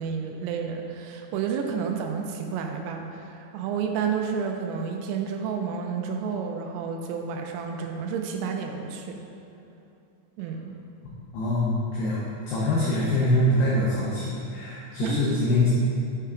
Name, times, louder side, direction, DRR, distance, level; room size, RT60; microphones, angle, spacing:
voice 1, 0.0-9.2 10.4-10.8 15.0-15.4, right 6 dB, 85° right, 3 dB, 3.2 m, -30 dB
voice 2, 11.3-15.7, left 1 dB, 85° left, -6 dB, 2.3 m, -24 dB
6.8 x 5.5 x 3.6 m, 2.7 s
omnidirectional pair, 5.9 m